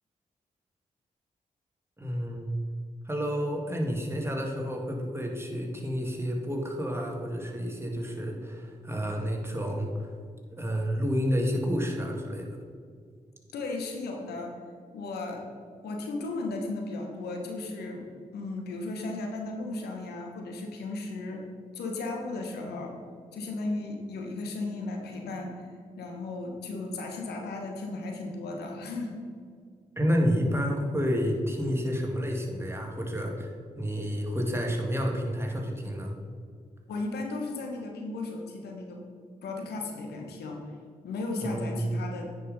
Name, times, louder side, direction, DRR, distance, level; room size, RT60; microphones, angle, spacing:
voice 1, 2.0-2.5 3.0-10.1 10.6-12.5 30.0-33.5 33.8-36.1 41.4-41.8, equal, 15° right, 1 dB, 2.1 m, -30 dB
voice 2, 13.5-14.6 14.9-15.5 15.8-18.1 18.3-21.4 21.7-22.9 23.3-25.7 26.0-29.2 36.9-39.0 39.4-40.7 41.0-42.3, left 2 dB, 85° left, 2 dB, 1.2 m, -35 dB
9.5 x 5.3 x 5.4 m, 2.1 s
supercardioid pair, 45°, 16 cm